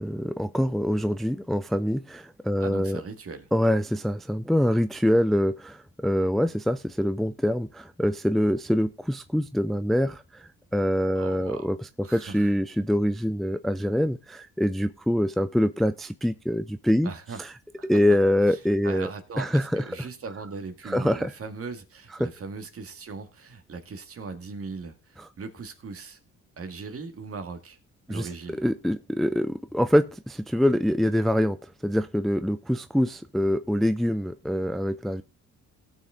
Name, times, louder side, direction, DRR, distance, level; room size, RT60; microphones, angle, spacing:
voice 1, 0.0-3.0 3.5-11.8 12.1-17.1 17.4-17.5 17.8-19.1 19.4-19.8 20.9-21.3 22.2-22.3 25.2-25.3 28.1-28.3 28.6-31.6 31.8-35.2, equal, ahead, 0.5 m, -25 dB
voice 2, 2.6-3.5 11.1-11.7 12.0-12.5 17.0-17.5 17.8-17.9 18.5-26.2 26.6-27.8 28.1-28.6, right 4 dB, 50° right, 2.0 m, -39 dB
17.5 x 6.3 x 3.6 m
cardioid pair, 90°, 30 cm